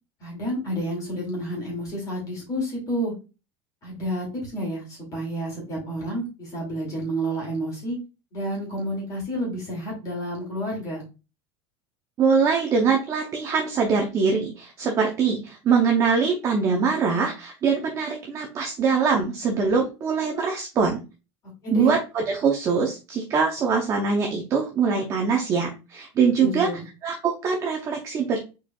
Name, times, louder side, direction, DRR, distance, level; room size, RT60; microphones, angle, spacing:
voice 1, 0.2-3.1 3.8-8.0 8.3-11.1 21.6-21.9 26.4-26.8, equal, 25° left, -3 dB, 2.4 m, -30 dB
voice 2, 12.2-21.0 21.7-26.7 27.0-28.4, right 5 dB, 20° right, 1 dB, 0.7 m, -23 dB
4.8 x 4.3 x 2.3 m, 0.29 s
supercardioid pair, 175°, 14 cm